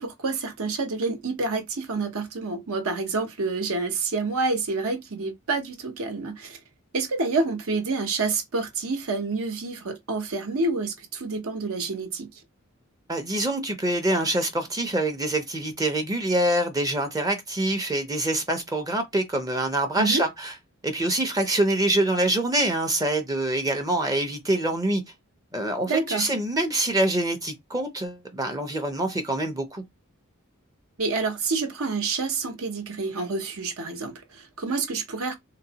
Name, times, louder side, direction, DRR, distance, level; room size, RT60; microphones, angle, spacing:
voice 1, 0.0-6.6 6.9-12.3 20.0-20.2 25.9-26.3 31.0-35.3, right 3 dB, 80° right, 0.8 m, -28 dB
voice 2, 13.1-20.5 20.8-25.0 25.5-29.8, right 1 dB, 15° right, 0.5 m, -25 dB
3.7 x 2.1 x 2.7 m
head